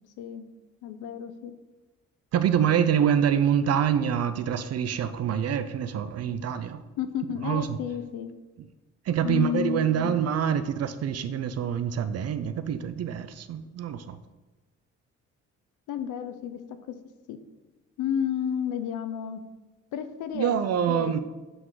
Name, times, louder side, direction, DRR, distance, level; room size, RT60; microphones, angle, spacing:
voice 1, 0.8-1.5 7.0-8.3 9.2-10.1 15.9-16.6 16.9-17.0 17.3-17.4 18.0-19.4 19.9-20.6 20.9-21.2, left 9 dB, 85° left, 10 dB, 0.7 m, -31 dB
voice 2, 2.3-6.8 7.4-7.8 9.1-14.2 20.3-21.2, right 8 dB, 55° right, 12 dB, 0.5 m, -26 dB
7.9 x 3.8 x 4.7 m, 1.2 s
cardioid pair, 90°, 30 cm